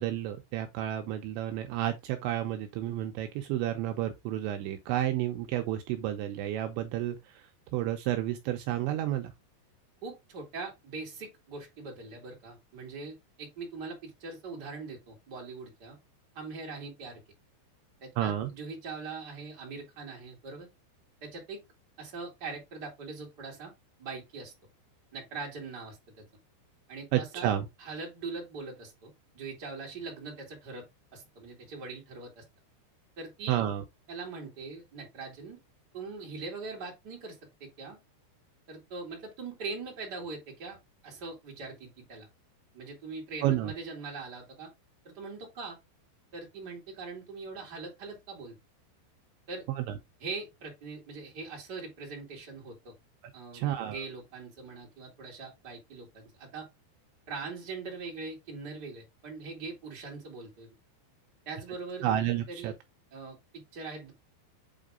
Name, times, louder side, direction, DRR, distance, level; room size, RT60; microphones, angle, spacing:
voice 1, 0.0-7.4 7.7-9.3 18.2-18.5 27.1-27.7 33.5-33.8 43.4-43.7 49.8-49.9 53.5-54.0 62.0-62.7, right 12 dB, 80° right, 2.9 m, -31 dB
voice 2, 10.0-16.0 16.3-17.2 18.0-20.7 21.2-21.6 22.0-23.7 24.0-24.5 25.1-26.2 26.9-27.5 27.8-30.9 31.1-32.4 33.2-33.6 34.1-35.6 35.9-38.0 38.7-40.8 41.0-42.3 42.7-44.7 45.0-45.8 46.3-48.5 49.5-49.6 50.2-52.9 53.3-56.7 57.3-60.7 61.4-62.0 62.5-62.7 63.1-64.1, right 4 dB, 25° right, 2.9 m, -42 dB
8.2 x 3.9 x 3.7 m
omnidirectional pair, 5.6 m